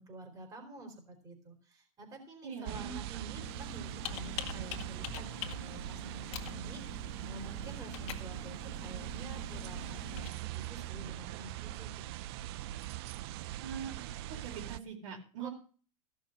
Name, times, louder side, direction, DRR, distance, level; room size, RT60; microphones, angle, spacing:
voice 1, 0.0-5.3 5.6-11.9 15.4-15.5, right 1 dB, 20° right, 1 dB, 4.3 m, -49 dB
voice 2, 2.4-3.0 13.6-14.1 14.4-15.5, right 7 dB, 60° right, 2 dB, 4.6 m, -42 dB
sound 1, 2.6-14.8, right 15 dB, 45° right, 0.5 m, -41 dB
Computer keyboard, 3.4-10.3, left 12 dB, 55° left, 1.9 m, -45 dB
15.5 x 6.4 x 6.5 m, 0.39 s
supercardioid pair, 150°, 18 cm